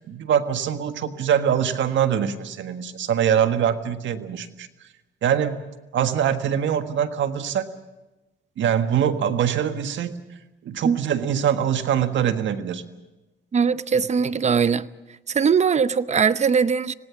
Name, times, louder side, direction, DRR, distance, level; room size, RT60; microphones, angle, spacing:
voice 1, 0.0-4.7 5.2-5.6 5.9-7.8 8.6-10.2 10.6-12.8, right 9 dB, 70° right, 8 dB, 1.6 m, -23 dB
voice 2, 13.5-14.9 15.3-16.9, right 6 dB, 35° right, 15 dB, 0.8 m, -20 dB
26.0 x 18.5 x 7.2 m, 1.1 s
cardioid pair, 90°, 20 cm